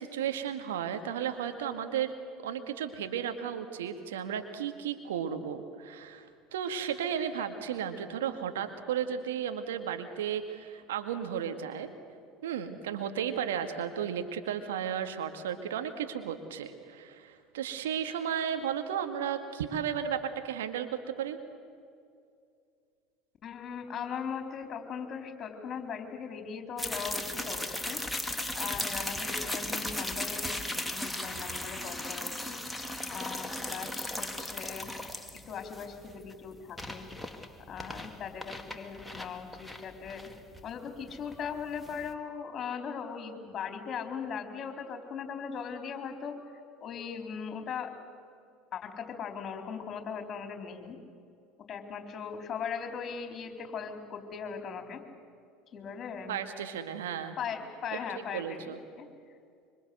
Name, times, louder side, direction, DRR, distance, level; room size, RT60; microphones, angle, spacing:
voice 1, 0.0-2.1 2.4-11.9 12.4-21.4 56.3-57.4 58.3-58.8, right 8 dB, 75° right, 7 dB, 1.9 m, -34 dB
voice 2, 23.4-28.0 28.3-32.6 33.1-34.9 35.5-37.1 37.7-40.3 40.6-46.4 46.8-47.9 48.7-51.0 51.7-55.0 55.7-56.4 57.4-59.1, left 6 dB, 40° left, 5 dB, 4.3 m, -39 dB
sound 1, 26.8-42.1, left 1 dB, 5° left, 2.2 m, -37 dB
25.5 x 25.0 x 8.1 m, 2.3 s
hypercardioid pair, 75°, 0 cm